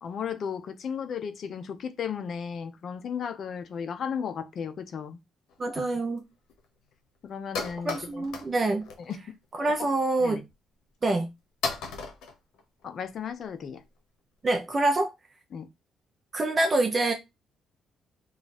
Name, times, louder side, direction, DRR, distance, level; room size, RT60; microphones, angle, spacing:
voice 1, 0.0-5.2 7.2-8.3 9.1-9.2 9.8-9.9 10.2-10.4 12.8-13.8 15.5-15.7, left 7 dB, 55° left, 0.5 m, -35 dB
sound 1, 5.5-5.6 6.2-6.3 6.5-6.6 6.9-7.0 7.3-8.5 8.8-9.2 9.6-9.8 10.5-10.6 11.2-11.3 11.6-13.1, left 4 dB, 90° left, 0.8 m, -35 dB
voice 2, 5.6-6.2 7.8-8.9 9.5-10.4 11.0-11.3 14.4-15.1 16.3-17.1, right 2 dB, 30° right, 0.5 m, -26 dB
3.1 x 2.4 x 4.0 m
cardioid pair, 105°, 0 cm